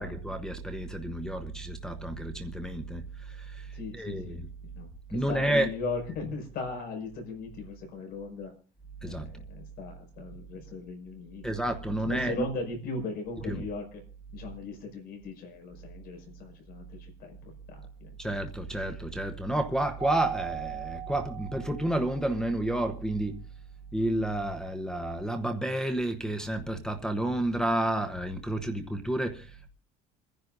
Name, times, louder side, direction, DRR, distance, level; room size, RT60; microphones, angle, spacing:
voice 1, 0.0-4.5 5.1-5.7 9.0-9.3 11.4-12.5 13.5-13.7 18.2-23.5 23.9-29.7, right 1 dB, 5° left, 0.9 m, -30 dB
voice 2, 3.7-4.4 4.8-8.5 9.0-11.4 11.9-14.0 14.3-18.1, left 3 dB, 50° left, 5.7 m, -38 dB
Keyboard (musical), 20.0-22.3, right 10 dB, 25° right, 1.9 m, -38 dB
27.5 x 10.5 x 2.6 m
cardioid pair, 145°, 20 cm